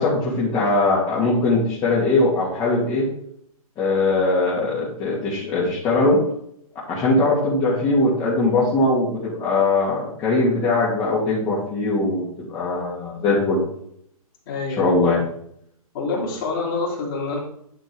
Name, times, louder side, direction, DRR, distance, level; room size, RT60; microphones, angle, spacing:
voice 1, 0.0-3.1 3.8-6.2 6.9-13.6 14.8-15.2, left 2 dB, 20° left, -7 dB, 2.1 m, -20 dB
voice 2, 14.4-14.8 15.1-15.2 15.9-17.4, left 3 dB, 35° left, -3 dB, 3.1 m, -26 dB
10.5 x 4.4 x 4.7 m, 0.70 s
hypercardioid pair, 150°, 19 cm